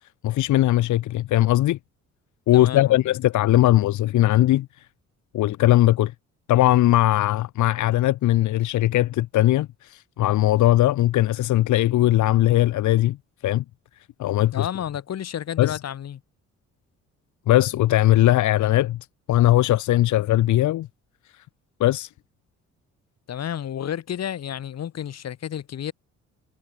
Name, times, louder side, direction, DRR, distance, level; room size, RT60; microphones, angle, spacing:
voice 1, 0.2-1.8 2.5-4.7 5.3-6.1 6.5-13.2 13.4-13.6 14.2-14.7 15.6-15.8 17.5-19.0 19.3-20.9 21.8-22.1, left 14 dB, 75° left, 0.9 m, -19 dB
voice 2, 2.5-3.0 14.5-16.2 23.3-25.9, left 10 dB, 60° left, 2.2 m, -31 dB
cardioid pair, 90°, 30 cm